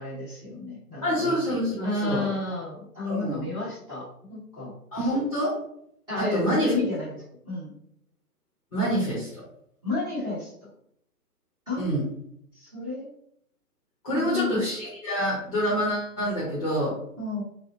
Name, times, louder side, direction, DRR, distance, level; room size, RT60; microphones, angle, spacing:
voice 1, 0.0-1.4 1.8-5.1 6.1-7.7 9.8-10.5 11.7-11.9 12.5-13.1 14.1-14.6 17.2-17.4, left 2 dB, 10° right, -11 dB, 0.9 m, -31 dB
voice 2, 1.0-2.3 3.0-3.5 4.9-5.5 6.2-6.7 8.7-9.4 11.8-12.0 14.0-17.0, equal, 25° left, -7 dB, 0.7 m, -27 dB
2.5 x 2.1 x 2.8 m, 0.70 s
hypercardioid pair, 140°, 47 cm